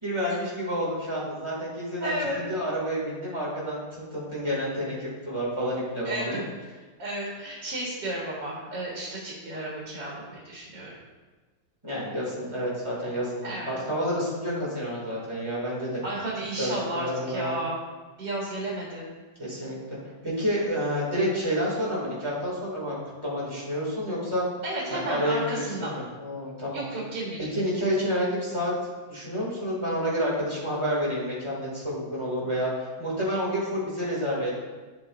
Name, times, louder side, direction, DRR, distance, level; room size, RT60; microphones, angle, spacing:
voice 1, 0.0-6.4 11.8-16.0 16.6-17.6 19.4-19.8 20.2-24.5 24.9-26.8 27.5-28.7 29.1-34.5, equal, 15° right, -6 dB, 2.5 m, -29 dB
voice 2, 2.0-2.4 6.0-6.5 7.0-11.0 13.4-13.7 16.0-17.8 18.2-19.0 24.6-25.9 26.7-27.4, right 1 dB, 85° right, -5 dB, 2.3 m, -32 dB
9.3 x 7.6 x 2.6 m, 1.3 s
omnidirectional pair, 1.8 m